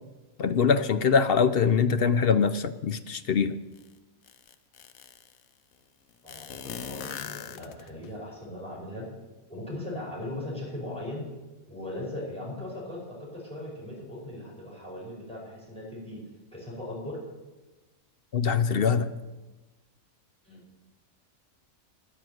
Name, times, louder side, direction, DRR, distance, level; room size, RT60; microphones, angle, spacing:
voice 1, 0.4-3.5 18.3-19.1, left 6 dB, 55° left, 12 dB, 0.7 m, -23 dB
sound 1, 3.8-3.9 4.2-5.4 6.3-8.1, left 8 dB, 70° left, 1.2 m, -40 dB
voice 2, 6.2-9.1 9.5-11.3 11.7-16.2 16.5-17.2 20.4-20.6, left 1 dB, 5° left, -4 dB, 5.0 m, -38 dB
12.0 x 10.5 x 7.8 m, 1.2 s
omnidirectional pair, 1.5 m